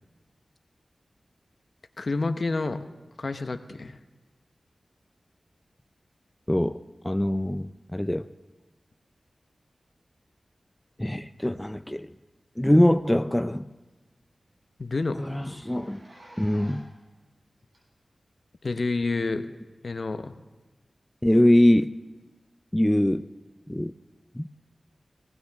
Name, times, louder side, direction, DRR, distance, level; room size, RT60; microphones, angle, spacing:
voice 1, 2.0-2.8 3.2-4.0 14.8-15.3 18.6-19.5 19.8-20.4, left 3 dB, 60° left, 9 dB, 0.8 m, -29 dB
voice 2, 6.5-6.8 7.0-8.3 11.0-12.1 12.6-13.7 15.2-16.0 16.4-16.9 21.2-22.0 22.7-23.3 23.7-23.9 24.3-24.5, left 1 dB, 10° left, 10 dB, 0.4 m, -23 dB
Zipper (clothing), 12.4-12.6 12.9-13.0 13.4-13.5 13.9-14.0 14.2-14.4 15.0-17.0 17.7-17.8 18.9-19.0, equal, 60° right, 5.5 m, -51 dB
18.5 x 17.5 x 3.5 m, 1.2 s
wide cardioid pair, 65°, 0 cm